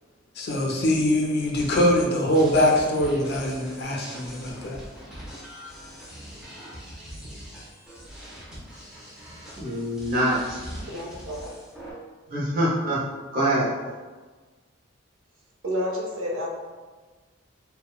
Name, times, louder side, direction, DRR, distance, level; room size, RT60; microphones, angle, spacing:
voice 1, 0.4-4.8, left 1 dB, 50° left, 0 dB, 0.4 m, -23 dB
sound 1, 1.5-11.9, equal, 5° right, 0.5 m, -42 dB
voice 2, 9.6-10.6 12.3-13.0 13.3-13.7, right 1 dB, 45° right, -6 dB, 0.7 m, -24 dB
voice 3, 10.9-11.5 15.6-16.5, equal, 85° right, -2 dB, 0.6 m, -30 dB
2.7 x 2.1 x 2.3 m, 1.3 s
head